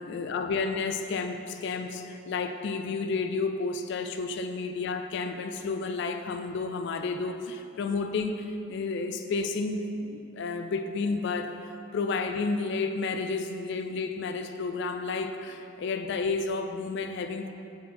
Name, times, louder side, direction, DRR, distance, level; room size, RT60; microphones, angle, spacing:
voice 1, 0.0-17.5, left 4 dB, 65° left, 7 dB, 0.4 m, -31 dB
7.2 x 4.3 x 4.3 m, 2.7 s
head